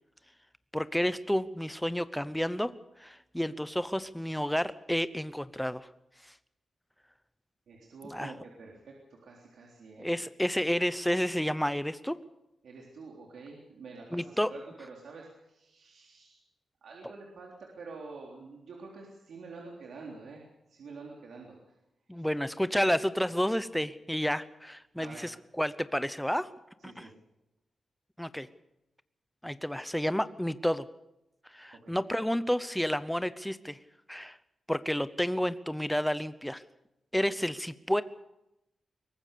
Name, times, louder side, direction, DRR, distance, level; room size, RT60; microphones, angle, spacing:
voice 1, 0.7-2.7 3.0-5.9 8.0-8.3 10.0-12.2 14.1-14.5 22.1-25.3 25.6-26.5 26.8-27.1 28.2-28.5 29.4-30.9 31.5-33.8 34.1-34.4 34.7-36.6 37.1-38.0, equal, 5° left, 14 dB, 0.8 m, -30 dB
voice 2, 7.7-10.1 12.6-16.4 16.8-20.4 20.7-21.8 22.1-22.3 25.0-25.3 26.8-27.1 31.7-32.0, right 4 dB, 75° right, -2 dB, 3.7 m, -47 dB
22.5 x 19.0 x 6.8 m, 0.90 s
wide cardioid pair, 160°, 0 cm